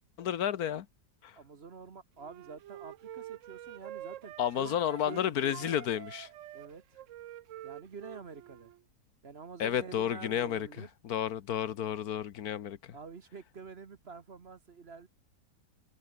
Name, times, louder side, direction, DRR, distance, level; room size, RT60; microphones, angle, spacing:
voice 1, 0.2-0.9 1.2-1.4 4.4-6.3 9.6-13.0, left 10 dB, 70° left, 1.4 m, -32 dB
voice 2, 1.3-5.7 6.5-6.8 7.6-8.7 9.2-10.9 12.9-15.1, right 5 dB, 40° right, 1.3 m, -47 dB
Wind instrument woodwind instrument, 2.2-5.2 5.5-8.8, right 13 dB, 65° right, 0.8 m, -47 dB
omnidirectional pair, 1.7 m